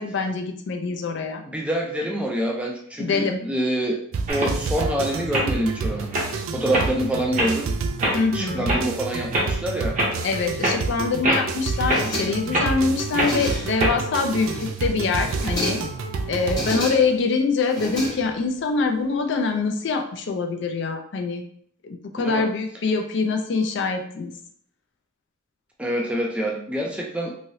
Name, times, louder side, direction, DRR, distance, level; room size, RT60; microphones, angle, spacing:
voice 1, 0.0-1.4 3.0-3.4 8.1-8.7 10.2-15.8 16.3-21.4 21.8-24.3, left 4 dB, 60° left, 5 dB, 0.4 m, -24 dB
voice 2, 1.5-4.0 4.3-6.1 6.5-7.8 8.3-10.0 22.2-22.5 25.8-27.3, right 1 dB, 5° right, -1 dB, 0.4 m, -26 dB
sound 1, 4.1-16.8, right 4 dB, 85° right, 0.4 m, -29 dB
sound 2, 4.3-4.8 5.3-5.5 6.0-6.3 6.7-6.9 7.4-7.5 8.0-8.2 8.7-8.8 9.3-9.5 10.0-10.1 10.6-10.8 11.2-11.5 11.9-12.0 12.5-12.7 13.2-13.3 13.8-13.9, right 1 dB, 40° right, 0.8 m, -23 dB
sound 3, 11.7-12.6 13.0-13.9 14.2-14.9 15.2-16.0 16.4-17.2 17.6-18.6, left 1 dB, 20° left, 0.9 m, -32 dB
3.1 x 2.7 x 2.6 m, 0.62 s
head